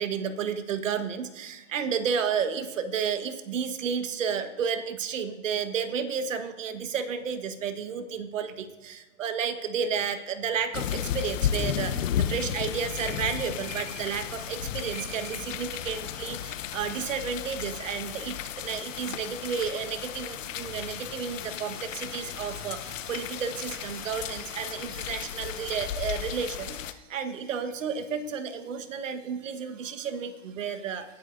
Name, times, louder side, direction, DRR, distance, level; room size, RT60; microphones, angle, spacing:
voice 1, 0.0-26.8 27.1-31.0, right 6 dB, 85° right, 10 dB, 1.3 m, -32 dB
sound 1, 10.7-26.9, left 10 dB, 85° left, 0.9 m, -34 dB
19.5 x 10.5 x 2.6 m, 1.1 s
hypercardioid pair, 155°, 37 cm